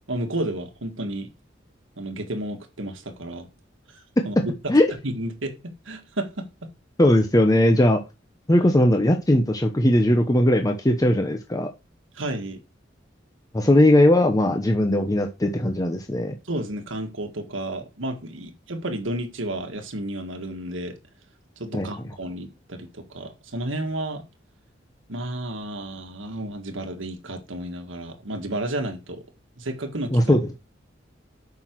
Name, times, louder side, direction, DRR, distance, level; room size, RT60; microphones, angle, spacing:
voice 1, 0.1-1.3 2.0-3.5 3.9-4.5 5.0-6.7 12.1-12.6 16.5-21.0 21.6-24.2 25.1-29.2 29.6-30.3, right 1 dB, 90° right, 1.7 m, -32 dB
voice 2, 7.0-8.0 8.5-11.7 13.5-16.3 21.7-21.9 30.1-30.4, left 1 dB, 20° left, 0.8 m, -19 dB
8.6 x 6.0 x 4.6 m
head